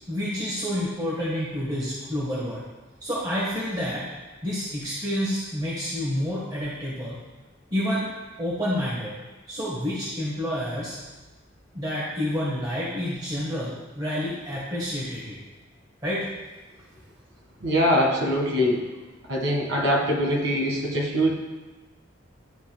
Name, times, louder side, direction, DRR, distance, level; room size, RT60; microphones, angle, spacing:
voice 1, 0.1-2.6 3.0-4.1 4.4-7.2 7.7-8.0 8.4-9.2 9.5-10.9 11.7-15.4 16.0-16.3, equal, 20° right, -8 dB, 1.3 m, -29 dB
voice 2, 17.6-18.8 19.3-21.3, equal, 80° right, -1 dB, 1.8 m, -23 dB
11.5 x 5.2 x 2.3 m, 1.2 s
head